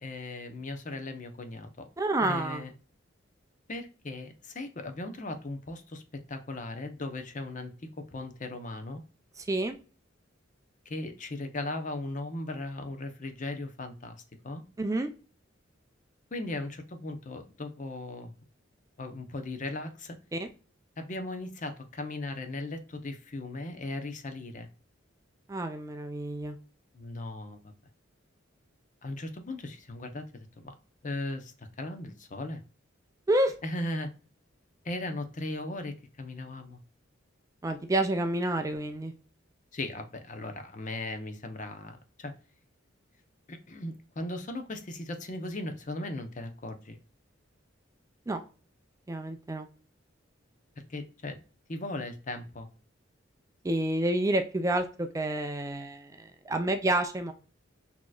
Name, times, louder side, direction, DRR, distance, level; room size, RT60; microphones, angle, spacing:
voice 1, 0.0-1.9 2.2-2.7 3.7-6.0 6.3-7.7 8.0-9.0 10.9-14.2 14.4-14.6 16.3-18.3 19.0-20.2 21.0-24.7 26.9-27.6 29.0-30.7 31.0-32.6 33.6-34.1 34.8-36.8 39.7-42.3 43.5-47.0 50.9-51.4 51.7-52.7, left 2 dB, 40° left, 7 dB, 0.8 m, -37 dB
voice 2, 2.0-2.6 9.4-9.8 14.8-15.1 20.3-20.5 25.5-26.6 33.3-33.5 37.6-39.1 48.3-48.4 49.1-49.7 53.6-57.3, right 1 dB, 15° right, 7 dB, 0.4 m, -29 dB
6.3 x 2.9 x 2.4 m, 0.36 s
head